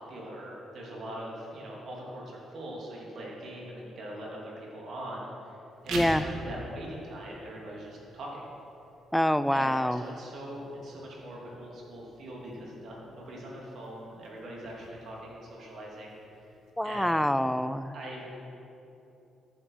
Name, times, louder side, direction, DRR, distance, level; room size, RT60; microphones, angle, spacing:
voice 1, 0.0-5.6 5.8-8.5 9.5-16.2 16.8-17.2 17.9-18.2, right 1 dB, 60° right, -3 dB, 3.2 m, -42 dB
sound 1, 5.7-16.7, right 2 dB, 85° right, 2.0 m, -46 dB
voice 2, 5.9-6.3 9.1-10.0 16.8-17.9, left 1 dB, 5° left, 13 dB, 0.4 m, -26 dB
14.5 x 8.7 x 5.0 m, 2.9 s
cardioid pair, 125°, 0 cm